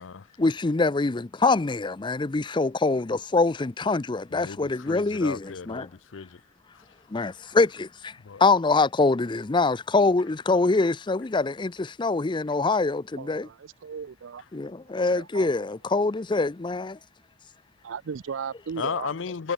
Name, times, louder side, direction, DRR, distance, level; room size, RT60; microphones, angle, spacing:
voice 1, 0.4-5.9 7.1-8.1 8.4-13.5 14.5-17.0, left 3 dB, 25° left, 0.5 m, -24 dB
voice 2, 4.3-6.4 6.7-6.8 8.2-8.4 18.8-19.5, left 6 dB, 80° left, 0.6 m, -34 dB
voice 3, 13.8-14.4 15.1-15.5 17.8-19.1, right 6 dB, 90° right, 0.5 m, -35 dB
head